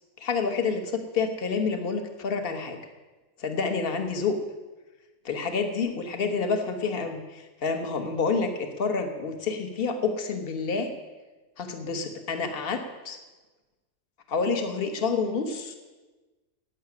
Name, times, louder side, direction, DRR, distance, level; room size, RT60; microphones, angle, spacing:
voice 1, 0.2-2.8 3.4-4.4 5.2-10.9 11.6-13.2 14.3-15.8, left 4 dB, 40° left, 6 dB, 1.5 m, -28 dB
12.0 x 8.3 x 9.6 m, 1.2 s
omnidirectional pair, 1.7 m